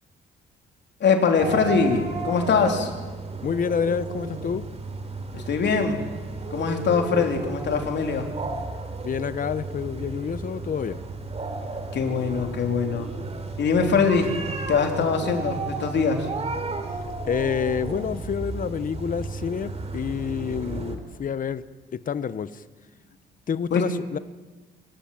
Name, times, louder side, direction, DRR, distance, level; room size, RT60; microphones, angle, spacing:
voice 1, 1.0-2.9 5.3-6.0 6.5-8.2 11.9-13.1 13.6-14.3 14.7-16.3 23.7-23.8, left 5 dB, 60° left, 4 dB, 3.5 m, -22 dB
sound 1, 1.4-21.0, right 3 dB, 30° right, 3.5 m, -33 dB
voice 2, 3.4-4.6 9.0-11.0 17.3-21.6 21.9-22.6 23.5-24.2, left 7 dB, 45° left, 14 dB, 1.0 m, -28 dB
24.0 x 14.5 x 9.1 m, 1.3 s
cardioid pair, 90°, 20 cm